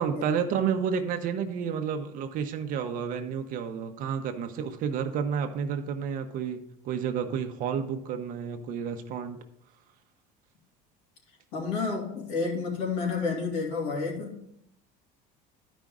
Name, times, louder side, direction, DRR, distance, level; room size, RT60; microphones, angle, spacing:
voice 1, 0.0-9.4, right 7 dB, 50° right, 7 dB, 0.8 m, -30 dB
voice 2, 11.5-14.4, left 4 dB, 75° left, -1 dB, 2.5 m, -30 dB
11.5 x 5.1 x 3.6 m, 0.77 s
cardioid pair, 150°, 18 cm